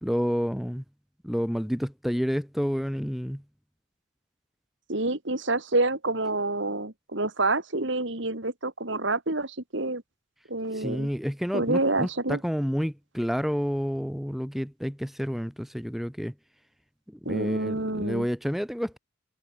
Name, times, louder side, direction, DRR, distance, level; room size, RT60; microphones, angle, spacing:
voice 1, 0.0-0.8 1.2-3.4 10.7-16.3 17.1-19.0, equal, ahead, 3.0 m, -29 dB
voice 2, 4.9-10.0 10.5-11.1 11.5-12.4 17.2-18.3, right 2 dB, 60° right, 2.7 m, -28 dB
head